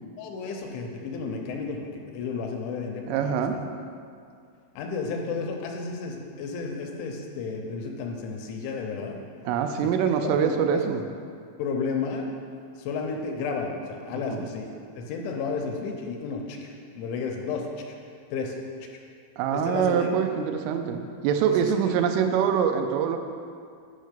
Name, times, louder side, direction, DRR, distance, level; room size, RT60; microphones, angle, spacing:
voice 1, 0.2-3.4 4.8-9.2 10.2-10.8 11.6-12.3 12.8-14.7 15.0-17.9 18.3-18.6 19.5-20.1 21.9-22.0, left 4 dB, 80° left, 1 dB, 3.1 m, -32 dB
voice 2, 3.1-3.6 9.5-11.1 14.1-14.5 19.4-23.2, right 7 dB, 90° right, 6 dB, 3.2 m, -24 dB
9.5 x 5.5 x 5.2 m, 2.3 s
omnidirectional pair, 5.5 m